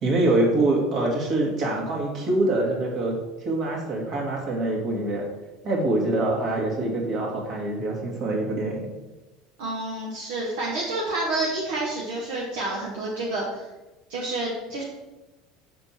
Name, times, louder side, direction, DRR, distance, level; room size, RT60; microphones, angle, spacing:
voice 1, 0.0-3.1 3.4-5.3 5.6-8.9, right 2 dB, 45° right, -1 dB, 2.3 m, -24 dB
voice 2, 9.6-13.7 14.1-14.8, right 2 dB, 60° right, -4 dB, 1.4 m, -29 dB
6.8 x 6.1 x 4.5 m, 1.1 s
figure-of-eight pair, 70°, 0 cm